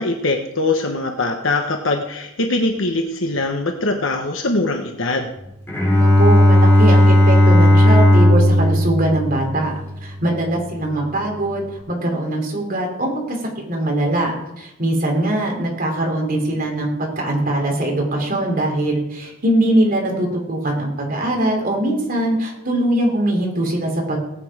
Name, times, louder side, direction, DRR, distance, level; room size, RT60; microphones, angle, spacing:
voice 1, 0.0-5.3, left 2 dB, 65° left, 4 dB, 1.2 m, -22 dB
Bowed string instrument, 5.7-10.2, left 1 dB, 10° left, 3.5 m, -14 dB
voice 2, 6.0-13.4 13.7-24.2, right 1 dB, 40° right, 0 dB, 3.4 m, -21 dB
17.5 x 8.7 x 5.0 m, 0.86 s
head